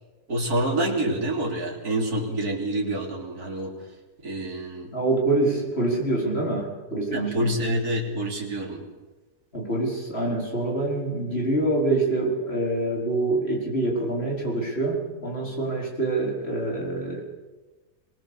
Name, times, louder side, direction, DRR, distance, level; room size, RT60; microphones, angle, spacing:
voice 1, 0.3-3.7 4.2-4.9 7.1-8.8, right 1 dB, 70° right, -1 dB, 3.6 m, -27 dB
voice 2, 4.9-7.5 9.5-17.2, right 2 dB, 40° left, -1 dB, 4.8 m, -26 dB
22.5 x 19.5 x 7.0 m, 1.2 s
omnidirectional pair, 1.7 m